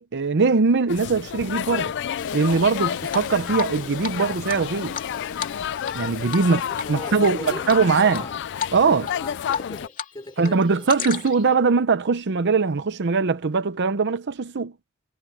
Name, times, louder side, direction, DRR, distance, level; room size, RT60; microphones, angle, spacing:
voice 1, 0.0-1.9 2.3-5.0 5.9-6.6 6.9-8.2 8.7-9.1 10.4-14.7, right 4 dB, 55° right, 0.7 m, -21 dB
sound 1, 0.9-9.9, left 9 dB, 55° left, 0.4 m, -30 dB
Hiss, 2.2-7.1, left 9 dB, 80° left, 2.4 m, -45 dB
Drip, 3.1-3.7 4.0-4.1 4.5-6.0 6.3-6.5 6.8-7.3 7.7-8.2 8.6-8.8 9.1-10.1 10.4-11.5, left 6 dB, 40° left, 2.6 m, -31 dB
voice 2, 6.5-8.4 9.2-11.2, left 2 dB, 20° left, 4.3 m, -39 dB
head